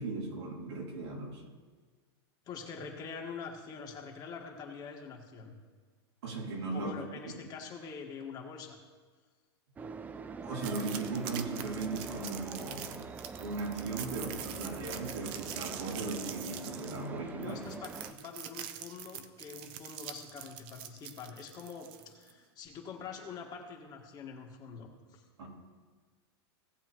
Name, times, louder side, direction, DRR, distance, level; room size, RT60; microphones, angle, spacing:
voice 1, 0.0-1.4 6.2-6.9 7.3-7.4 10.4-13.0 13.4-17.6 25.4-25.5, right 3 dB, 85° right, -3 dB, 3.4 m, -37 dB
voice 2, 2.4-5.5 6.7-8.8 17.4-25.2, left 5 dB, 30° left, 1 dB, 1.7 m, -45 dB
sound 1, 9.8-18.1, right 5 dB, 10° right, 0.3 m, -44 dB
sound 2, 10.6-22.3, right 10 dB, 40° right, 0.7 m, -44 dB
18.0 x 7.4 x 3.1 m, 1.5 s
supercardioid pair, 140°, 14 cm